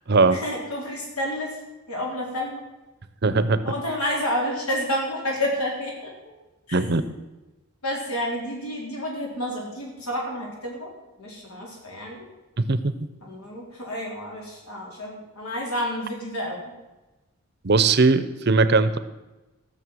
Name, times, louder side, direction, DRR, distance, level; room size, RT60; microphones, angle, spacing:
voice 1, 0.3-1.6 1.9-2.6 3.6-6.1 6.7-6.8 7.8-10.9 11.2-12.3 13.2-16.6, equal, 85° left, -1 dB, 4.2 m, -30 dB
voice 2, 3.2-3.6 6.7-7.0 12.7-12.9 17.6-19.0, right 3 dB, 50° right, 13 dB, 0.7 m, -19 dB
14.5 x 6.7 x 7.7 m, 1.1 s
head